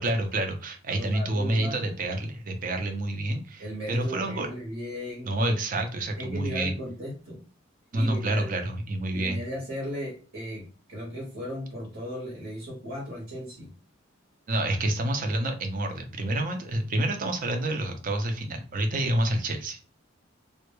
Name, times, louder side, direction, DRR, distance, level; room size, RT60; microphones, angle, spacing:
voice 1, 0.0-4.5 5.2-6.7 7.9-9.4 14.5-19.8, right 1 dB, 45° right, 5 dB, 0.5 m, -28 dB
voice 2, 0.9-1.9 3.6-5.3 6.2-7.4 7.9-8.5 9.1-13.7, equal, 65° right, -3 dB, 0.9 m, -36 dB
2.2 x 2.0 x 2.9 m, 0.38 s
head